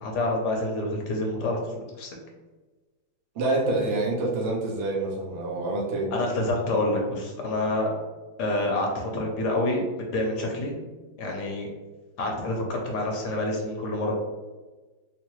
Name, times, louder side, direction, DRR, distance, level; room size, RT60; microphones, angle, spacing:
voice 1, 0.0-2.1 6.1-7.9 8.4-10.7 11.2-11.7 12.2-14.1, left 1 dB, 70° left, 0 dB, 1.1 m, -27 dB
voice 2, 3.3-6.1, right 2 dB, 65° right, -2 dB, 0.7 m, -27 dB
3.5 x 3.2 x 3.0 m, 1.3 s
omnidirectional pair, 2.1 m